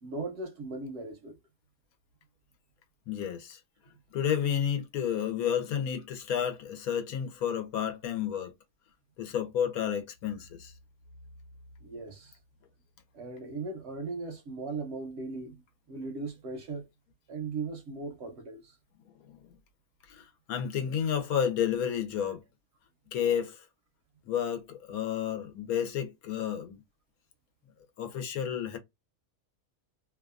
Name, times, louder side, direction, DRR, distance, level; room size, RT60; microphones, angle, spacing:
voice 1, 0.0-1.4 11.8-12.4 13.1-15.6 15.9-16.9 17.3-18.8, right 3 dB, 60° right, 0.7 m, -38 dB
voice 2, 3.1-3.6 4.1-8.5 9.2-10.7 19.3-19.4 20.1-22.4 23.1-23.7 24.3-26.8 28.0-28.8, left 8 dB, 80° left, 1.2 m, -31 dB
2.7 x 2.3 x 2.3 m
omnidirectional pair, 1.5 m